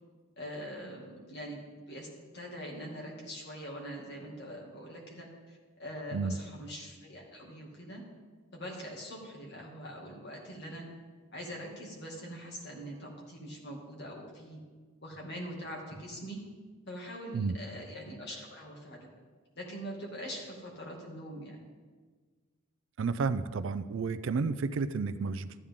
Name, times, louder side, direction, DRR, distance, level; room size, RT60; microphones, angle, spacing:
voice 1, 0.4-1.6 1.9-2.1 2.3-8.0 8.5-10.9 11.3-14.6 15.0-16.4 16.9-19.1 19.6-21.6, equal, 50° left, -2 dB, 2.3 m, -43 dB
voice 2, 23.0-25.5, right 4 dB, 60° right, 13 dB, 0.4 m, -31 dB
13.5 x 10.0 x 3.7 m, 1.4 s
head